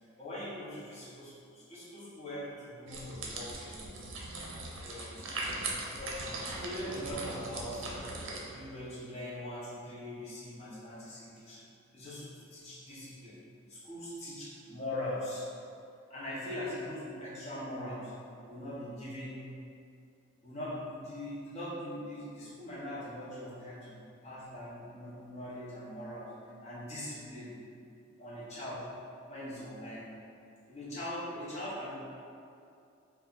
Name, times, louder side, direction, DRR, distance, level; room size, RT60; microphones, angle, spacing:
voice 1, 0.2-5.1 5.9-7.9 8.5-11.6 11.9-13.4 13.7-15.5 16.1-18.1 18.4-19.4 20.4-26.3 26.6-27.5 28.2-28.8 29.3-30.0 30.7-31.9, left 1 dB, 35° left, -9 dB, 1.0 m, -41 dB
sound 1, 2.9-8.4, right 2 dB, 65° right, 0.6 m, -39 dB
3.4 x 2.4 x 3.9 m, 2.6 s
head